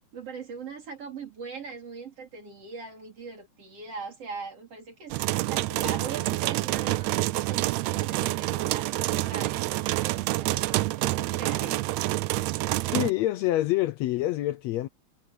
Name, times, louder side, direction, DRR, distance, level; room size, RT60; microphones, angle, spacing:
voice 1, 0.1-11.8, right 5 dB, 50° right, 4.8 m, -41 dB
sound 1, 5.1-13.1, right 18 dB, 80° right, 1.7 m, -27 dB
voice 2, 12.9-14.9, left 15 dB, 75° left, 1.8 m, -26 dB
omnidirectional pair, 3.4 m